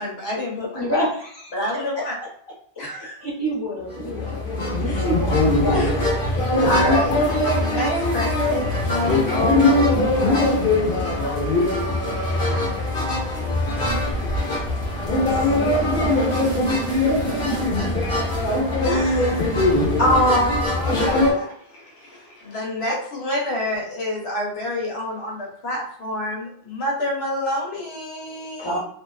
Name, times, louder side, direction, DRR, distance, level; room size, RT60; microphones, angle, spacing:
voice 1, 0.0-0.9 1.5-2.1 2.8-3.2 4.9-5.0 5.7-10.7 11.0-12.0 15.2-15.6 18.8-19.5 20.0-28.8, left 1 dB, 80° left, 1.0 m, -27 dB
voice 2, 0.7-1.5 3.2-4.4 4.8-5.8 28.6-28.8, equal, 25° left, 1.0 m, -27 dB
sound 1, 3.9-21.3, left 2 dB, 65° left, 0.9 m, -21 dB
voice 3, 13.9-14.3 15.4-17.7, right 9 dB, 90° right, 0.9 m, -33 dB
2.4 x 2.2 x 2.3 m
omnidirectional pair, 1.0 m